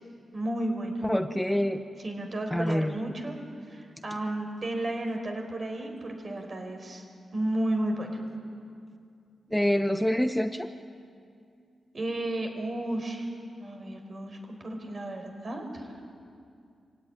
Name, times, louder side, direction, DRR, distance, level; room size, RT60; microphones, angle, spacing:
voice 1, 0.3-1.0 2.0-3.4 3.7-7.0 7.3-8.1 11.9-13.3 13.6-16.0, right 1 dB, 45° right, 4 dB, 4.9 m, -33 dB
voice 2, 1.0-1.8 2.5-2.9 9.5-10.7, equal, 5° left, 7 dB, 0.9 m, -26 dB
25.5 x 17.0 x 9.8 m, 2.4 s
cardioid pair, 75°, 0 cm